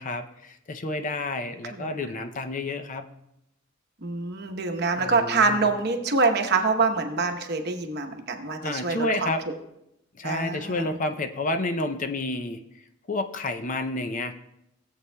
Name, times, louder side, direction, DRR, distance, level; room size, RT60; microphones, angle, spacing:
voice 1, 0.0-3.1 5.0-5.7 8.6-9.4 10.1-12.6 13.1-14.3, left 2 dB, 40° left, 8 dB, 0.5 m, -30 dB
voice 2, 4.0-9.3 10.2-10.9, right 4 dB, 55° right, 4 dB, 1.0 m, -25 dB
17.0 x 8.2 x 2.2 m, 0.82 s
head